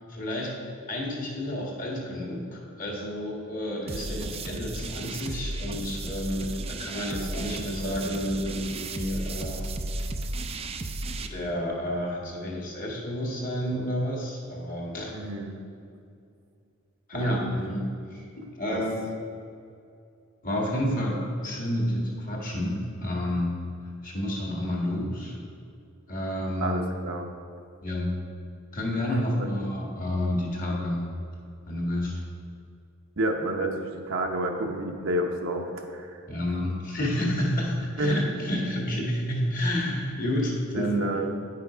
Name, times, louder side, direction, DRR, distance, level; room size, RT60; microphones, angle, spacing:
voice 1, 0.1-0.5 0.9-9.6 11.2-15.1 17.1-19.0 20.4-21.2 21.4-23.5 24.0-25.4 26.1-26.8 27.8-28.2 28.7-31.0 31.7-32.2 36.3-41.3, left 1 dB, 40° left, -2 dB, 1.7 m, -30 dB
sound 1, 3.9-11.3, right 2 dB, 30° right, 0.4 m, -34 dB
voice 2, 15.1-15.6 17.1-17.4 26.6-27.3 29.1-29.5 33.2-36.2 38.0-38.2 40.7-41.3, right 1 dB, 65° right, 1 dB, 0.8 m, -29 dB
9.4 x 5.8 x 5.0 m, 2.4 s
head